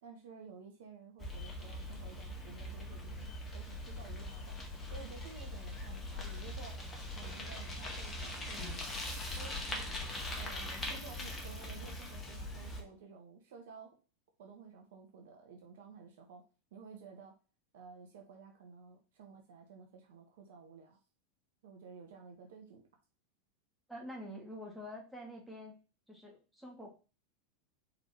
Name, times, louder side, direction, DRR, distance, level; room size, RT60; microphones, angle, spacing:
voice 1, 0.0-4.6 4.9-6.7 7.1-8.9 9.4-9.9 10.4-13.9 14.4-16.4 16.7-17.3 17.7-21.0 21.6-22.8, right 5 dB, 60° right, 2 dB, 1.4 m, -53 dB
Bicycle, 1.2-12.8, left 1 dB, 20° left, 1.8 m, -41 dB
voice 2, 23.9-25.8 26.1-26.9, equal, ahead, -3 dB, 2.4 m, -47 dB
5.2 x 4.1 x 4.5 m, 0.34 s
figure-of-eight pair, 85°, 0 cm